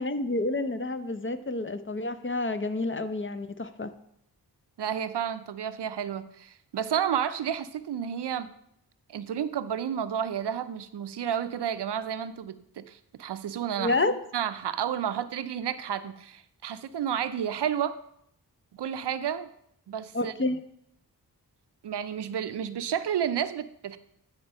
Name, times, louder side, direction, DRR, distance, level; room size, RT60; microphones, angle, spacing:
voice 1, 0.0-3.9 13.8-14.2 20.1-20.6, left 2 dB, 30° left, 10 dB, 0.6 m, -29 dB
voice 2, 4.8-8.5 9.1-14.0 14.3-18.0 18.7-19.5 19.9-20.3 21.8-24.0, right 9 dB, 85° right, 12 dB, 0.6 m, -31 dB
9.5 x 4.4 x 5.4 m, 0.72 s
wide cardioid pair, 60°, 40 cm